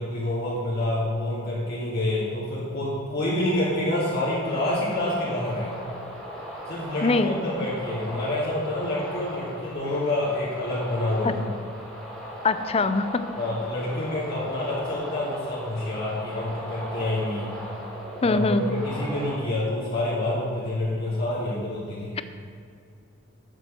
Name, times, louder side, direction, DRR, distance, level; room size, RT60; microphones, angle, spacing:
voice 1, 0.0-5.7 6.7-11.5 13.4-17.5 18.2-22.1, left 1 dB, 50° left, -7 dB, 2.6 m, -27 dB
sound 1, 4.4-19.4, equal, 5° left, 2.8 m, -37 dB
voice 2, 7.0-7.3 11.2-11.3 12.4-13.2 18.2-18.7, left 3 dB, 30° left, 12 dB, 0.4 m, -22 dB
7.9 x 7.6 x 7.7 m, 2.4 s
head